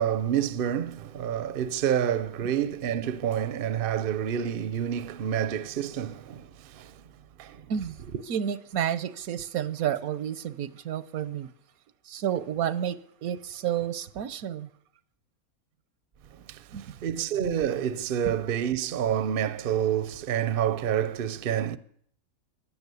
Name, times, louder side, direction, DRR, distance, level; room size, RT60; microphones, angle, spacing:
voice 1, 0.0-7.0 7.4-7.7 16.5-21.8, right 9 dB, 50° right, 0.8 m, -28 dB
voice 2, 8.3-11.5 12.1-14.7 16.7-16.9, right 9 dB, 80° right, 1.3 m, -30 dB
15.5 x 11.0 x 8.3 m
omnidirectional pair, 1.5 m